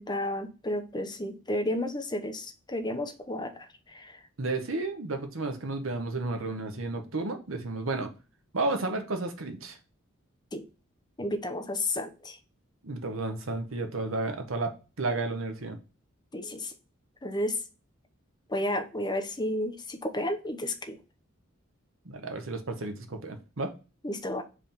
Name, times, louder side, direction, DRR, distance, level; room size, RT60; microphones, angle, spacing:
voice 1, 0.0-3.5 3.9-4.1 10.5-10.6 11.2-12.4 16.3-16.7 17.2-17.5 18.5-21.0 24.0-24.4, left 1 dB, 20° left, 0.8 m, -32 dB
voice 2, 4.4-8.1 8.5-9.8 12.8-15.8 22.0-23.7, right 2 dB, 80° right, 1.1 m, -32 dB
4.9 x 3.6 x 5.6 m
head